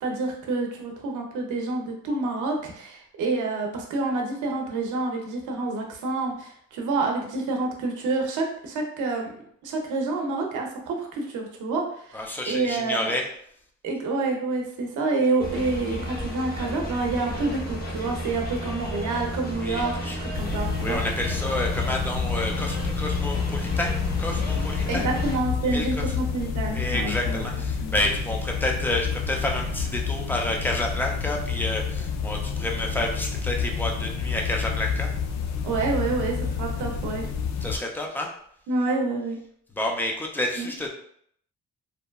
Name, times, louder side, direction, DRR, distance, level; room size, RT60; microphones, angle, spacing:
voice 1, 0.0-9.3 9.6-13.1 13.8-21.0 24.9-27.4 27.8-28.0 35.6-37.3 38.7-39.4 40.6-40.7, right 3 dB, 80° right, 1 dB, 0.7 m, -28 dB
voice 2, 12.1-13.2 19.6-20.2 20.8-23.9 24.2-25.1 25.7-26.0 26.7-35.1 37.6-38.3 39.8-40.9, left 1 dB, 5° left, 0 dB, 0.5 m, -29 dB
sound 1, 15.4-25.4, equal, 30° left, 0.9 m, -32 dB
sound 2, 20.3-37.8, left 6 dB, 65° left, 0.4 m, -29 dB
2.8 x 2.2 x 2.2 m, 0.65 s
cardioid pair, 90°, 30 cm